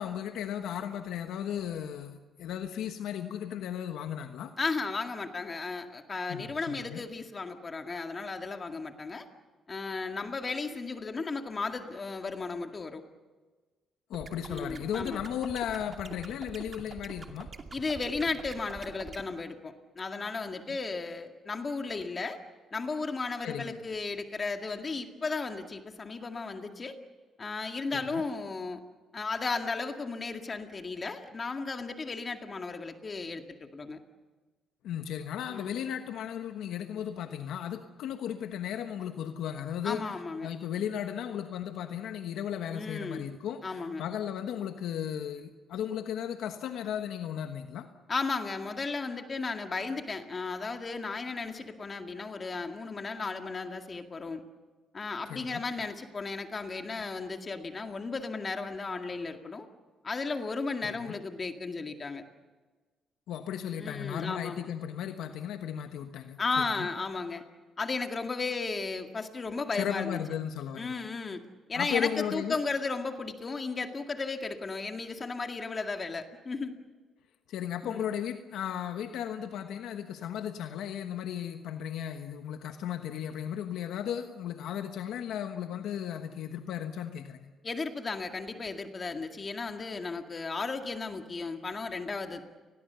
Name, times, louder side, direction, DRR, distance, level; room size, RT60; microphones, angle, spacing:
voice 1, 0.0-4.5 6.3-7.0 14.1-17.5 20.7-20.8 23.4-23.8 27.9-28.2 34.8-40.1 40.4-47.9 55.3-55.6 60.8-61.2 63.3-66.9 69.7-71.1 71.7-72.6 77.5-87.5, left 9 dB, 85° left, 7 dB, 1.2 m, -35 dB
voice 2, 4.6-9.3 9.7-13.0 14.5-15.2 17.7-22.4 22.7-27.0 27.4-28.8 29.1-34.0 35.5-35.8 39.8-40.5 42.7-43.3 43.6-44.0 48.1-54.4 54.9-59.7 60.0-62.2 63.8-64.7 66.4-67.4 67.8-70.2 70.8-71.4 71.7-76.7 77.8-78.0 87.6-92.4, left 4 dB, 35° left, 5 dB, 2.1 m, -35 dB
sound 1, 14.1-19.2, right 4 dB, 40° right, 2.5 m, -44 dB
29.0 x 21.0 x 6.9 m, 1.3 s
cardioid pair, 90°, 0 cm